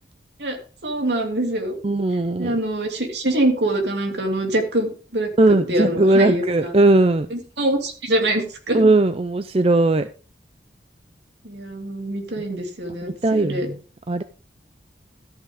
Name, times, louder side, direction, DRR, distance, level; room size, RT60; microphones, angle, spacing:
voice 1, 0.8-1.8 2.4-5.3 5.7-6.7 7.3-8.8 11.4-13.7, right 1 dB, 75° right, 2 dB, 2.8 m, -24 dB
voice 2, 1.8-2.6 5.4-7.3 8.7-10.1 13.0-13.8 14.1-14.2, right 2 dB, 30° right, 11 dB, 0.4 m, -18 dB
13.5 x 9.3 x 3.7 m, 0.36 s
head